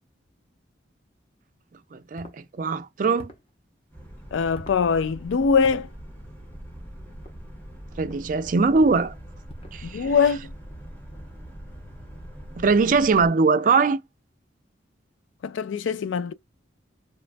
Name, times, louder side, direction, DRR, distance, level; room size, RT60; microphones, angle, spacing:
voice 1, 1.9-3.3 8.0-9.1 9.7-10.1 12.6-14.0, right 4 dB, 45° right, 0.3 m, -21 dB
sound 1, 2.2-2.4 3.2-3.5 4.5-4.8 5.6-5.9 7.1-7.4 8.0-8.2 8.8-9.1 9.5-9.8, equal, 30° left, 0.6 m, -45 dB
Boat Water vehicle, 3.9-13.3, equal, 10° left, 0.9 m, -42 dB
voice 2, 4.3-5.9 9.8-10.5 15.4-16.3, left 5 dB, 90° left, 0.4 m, -22 dB
3.0 x 2.2 x 2.4 m
head